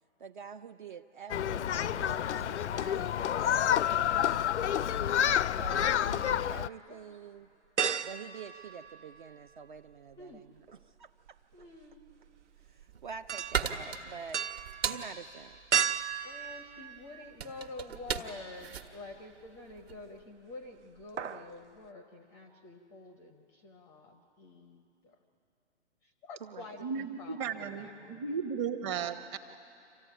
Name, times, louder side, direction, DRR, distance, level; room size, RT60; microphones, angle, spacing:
voice 1, 0.2-5.0 5.6-7.5 8.0-11.4 12.7-14.4 14.8-15.6 26.4-26.8, right 6 dB, 45° right, 9 dB, 0.5 m, -47 dB
Human group actions, 1.3-6.7, left 10 dB, 70° left, 0.5 m, -29 dB
sound 1, 7.8-9.5 9.8-17.7 18.1-18.2 19.6-20.2 20.5-20.7 21.0-21.5 21.8-21.9, right 8 dB, 80° right, 0.8 m, -36 dB
voice 2, 11.5-12.0 16.2-25.2 26.0-28.4, left 3 dB, 10° left, 6 dB, 0.5 m, -48 dB
sound 2, 12.6-20.1, right 7 dB, 60° right, 1.5 m, -38 dB
voice 3, 26.8-29.4, right 6 dB, 25° right, 8 dB, 0.9 m, -35 dB
26.5 x 15.0 x 10.0 m, 2.7 s
figure-of-eight pair, 135°, 36 cm